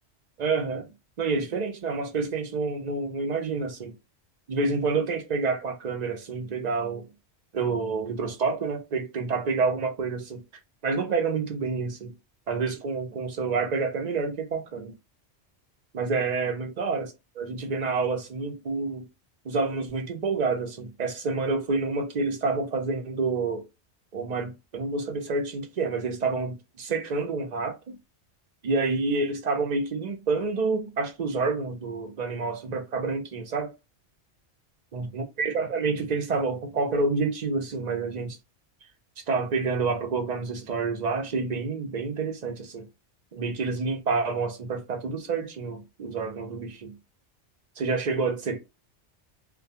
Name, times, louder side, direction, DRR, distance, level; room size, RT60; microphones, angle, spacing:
voice 1, 0.4-0.9 1.2-3.9 4.5-7.1 7.5-10.4 10.8-12.1 12.5-14.9 15.9-17.1 17.4-19.1 19.4-23.6 24.1-27.9 28.6-33.7 34.9-38.4 39.3-42.9 43.3-47.0 47.8-48.6, right 4 dB, 50° right, 0.5 m, -28 dB
2.2 x 2.2 x 2.7 m
omnidirectional pair, 1.2 m